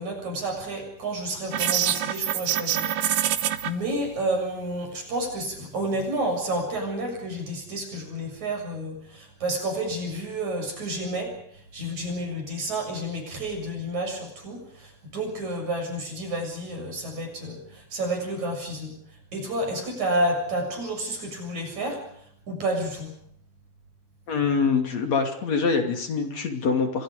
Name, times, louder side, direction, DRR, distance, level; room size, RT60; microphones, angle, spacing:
voice 1, 0.0-2.9 3.2-11.3 11.7-19.0 19.3-22.0 22.5-23.1, right 1 dB, 60° right, 4 dB, 8.5 m, -30 dB
sound 1, 1.5-3.7, right 11 dB, 85° right, 2.9 m, -25 dB
voice 2, 24.3-27.0, left 5 dB, 55° left, 5 dB, 3.9 m, -24 dB
29.0 x 25.0 x 5.1 m, 0.66 s
omnidirectional pair, 3.7 m